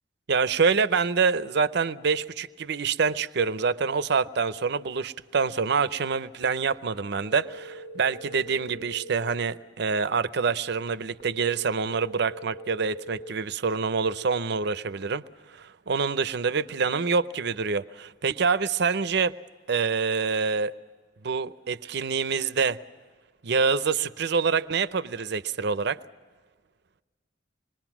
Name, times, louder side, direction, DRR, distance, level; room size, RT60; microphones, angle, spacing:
voice 1, 0.3-15.2 15.5-19.3 19.7-20.7 21.2-22.8 23.4-26.0, right 5 dB, 65° right, 0.6 m, -26 dB
sound 1, 7.2-9.2 11.2-13.2, right 1 dB, 85° left, 3.7 m, -42 dB
26.0 x 21.0 x 6.0 m
head